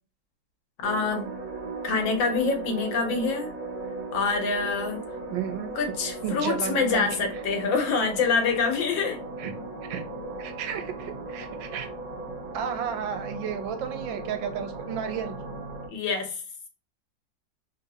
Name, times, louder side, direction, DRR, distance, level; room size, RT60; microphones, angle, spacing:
voice 1, 0.8-1.3 1.8-3.5 4.1-5.0 5.7-9.2 15.9-16.4, left 4 dB, 80° left, 4 dB, 1.6 m, -26 dB
sound 1, 0.8-15.9, right 2 dB, 50° right, 1.1 m, -37 dB
voice 2, 5.3-5.7 6.2-7.1 9.4-9.5 9.9-10.0 10.4-11.9 12.5-15.4, right 8 dB, 85° right, 8 dB, 1.4 m, -32 dB
3.5 x 2.7 x 2.6 m, 0.35 s
omnidirectional pair, 2.0 m